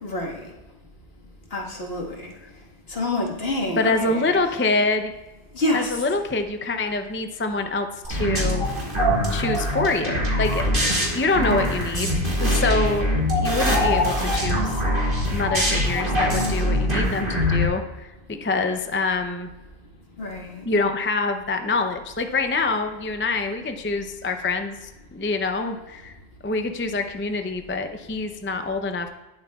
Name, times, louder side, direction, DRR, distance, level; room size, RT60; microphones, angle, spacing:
voice 1, 0.0-0.4 1.5-2.3 2.9-4.4 5.5-6.1 20.2-20.7, left 1 dB, 65° left, -1 dB, 1.9 m, -27 dB
voice 2, 3.8-5.1 5.7-8.7 9.3-13.1 13.4-18.1 18.4-19.5 20.6-26.1 26.4-29.1, left 3 dB, 15° left, 6 dB, 0.4 m, -26 dB
sound 1, 8.0-17.7, equal, 50° right, 2.8 m, -23 dB
18.5 x 7.6 x 2.4 m, 1.1 s
omnidirectional pair, 1.1 m